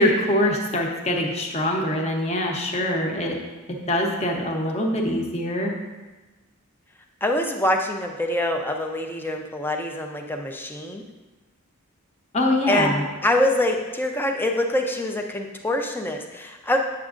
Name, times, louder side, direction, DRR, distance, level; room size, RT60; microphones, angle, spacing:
voice 1, 0.0-3.4 3.7-5.7 12.3-13.0, left 1 dB, 30° left, 1 dB, 0.9 m, -23 dB
voice 2, 7.2-11.0 12.7-16.8, left 1 dB, 10° left, 3 dB, 0.5 m, -25 dB
8.6 x 7.1 x 2.5 m, 1.2 s
head